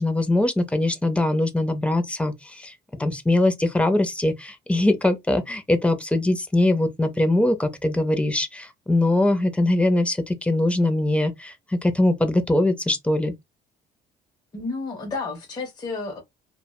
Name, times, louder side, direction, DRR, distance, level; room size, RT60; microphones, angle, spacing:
voice 1, 0.0-2.7 3.0-13.3, left 1 dB, 5° left, 0.5 m, -22 dB
voice 2, 14.5-16.2, left 3 dB, 25° left, 0.9 m, -31 dB
2.6 x 2.1 x 2.2 m
cardioid pair, 110°, 17 cm